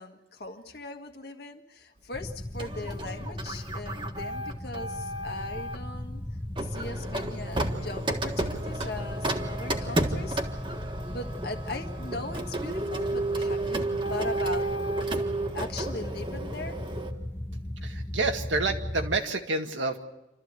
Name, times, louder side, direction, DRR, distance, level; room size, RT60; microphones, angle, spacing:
voice 1, 0.0-6.2 6.6-10.6 11.1-14.7 15.5-16.8, left 2 dB, 55° left, 5 dB, 1.7 m, -39 dB
sound 1, 2.1-19.2, left 1 dB, 15° left, 0.9 m, -37 dB
Printer, 2.6-5.8 6.6-17.1, right 2 dB, 25° right, 1.5 m, -32 dB
voice 2, 17.8-20.0, right 3 dB, 90° right, 4 dB, 1.9 m, -29 dB
28.5 x 13.5 x 8.0 m, 0.97 s
head